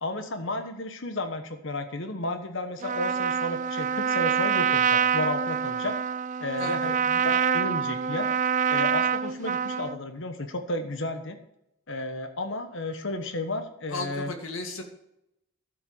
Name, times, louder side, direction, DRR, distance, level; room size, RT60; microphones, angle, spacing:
voice 1, 0.0-5.9 6.4-8.3 8.7-11.4 11.9-14.3, left 2 dB, 60° left, 7 dB, 1.2 m, -33 dB
Trumpet, 2.8-10.0, right 7 dB, 35° right, 0.4 m, -26 dB
voice 2, 6.6-6.9 13.9-14.8, left 2 dB, 75° left, 4 dB, 2.1 m, -35 dB
12.0 x 7.9 x 7.1 m, 0.82 s
head